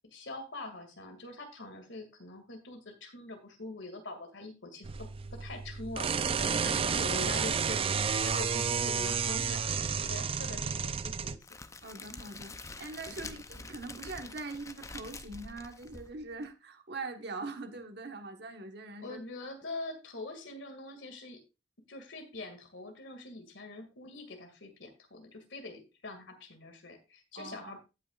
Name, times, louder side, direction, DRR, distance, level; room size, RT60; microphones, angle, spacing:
voice 1, 0.1-4.9 5.3-11.4 13.2-13.4 19.0-21.4 21.9-27.8, left 2 dB, 80° left, 2.2 m, -44 dB
sound 1, 4.8-11.4, right 6 dB, 30° right, 0.4 m, -31 dB
voice 2, 6.5-6.9 8.3-8.5 11.8-19.5 27.3-27.7, right 3 dB, 60° right, 1.3 m, -43 dB
Crackle, 11.4-16.5, left 3 dB, 15° left, 0.6 m, -46 dB
16.0 x 5.8 x 2.4 m
head